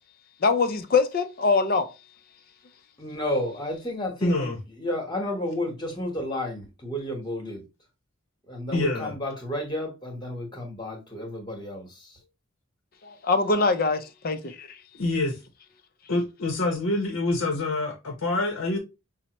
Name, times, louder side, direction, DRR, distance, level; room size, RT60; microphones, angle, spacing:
voice 1, 0.4-1.9 13.0-14.7, left 4 dB, 45° left, 0.4 m, -23 dB
voice 2, 3.0-7.6 8.5-12.2, left 1 dB, 20° left, 1.0 m, -32 dB
voice 3, 4.2-4.6 8.7-9.1 14.9-15.4 16.1-18.8, left 2 dB, 75° left, 0.7 m, -26 dB
5.3 x 2.0 x 2.9 m
head